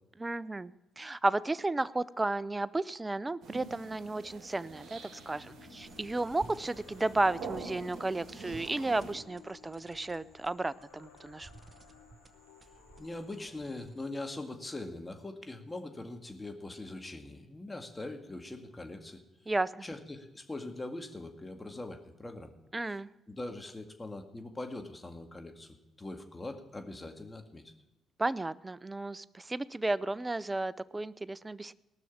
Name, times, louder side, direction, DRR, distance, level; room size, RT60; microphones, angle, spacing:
voice 1, 0.2-11.5 19.5-19.9 22.7-23.1 28.2-31.7, right 2 dB, 20° right, 18 dB, 0.5 m, -33 dB
sound 1, 3.4-9.2, right 4 dB, 65° right, 2.1 m, -46 dB
sound 2, 4.6-14.0, left 9 dB, 90° left, 0.9 m, -58 dB
sound 3, 5.8-14.2, right 4 dB, 40° right, 0.9 m, -57 dB
voice 2, 13.0-19.2 19.8-22.5 23.3-27.7, left 2 dB, 20° left, 5 dB, 2.0 m, -42 dB
18.0 x 6.2 x 7.3 m, 1.0 s
hypercardioid pair, 50°, 0 cm